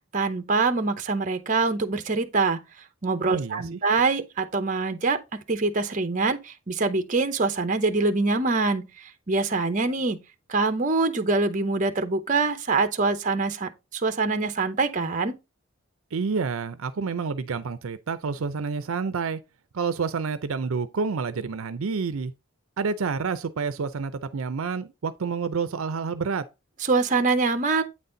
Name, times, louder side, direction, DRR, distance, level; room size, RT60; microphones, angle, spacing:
voice 1, 0.1-2.6 3.0-10.2 10.5-15.4 26.9-27.8, right 3 dB, 35° right, 0.8 m, -24 dB
voice 2, 3.2-3.8 16.1-19.4 19.7-22.3 22.8-26.5, right 5 dB, 80° right, 0.5 m, -29 dB
8.6 x 4.1 x 3.8 m
head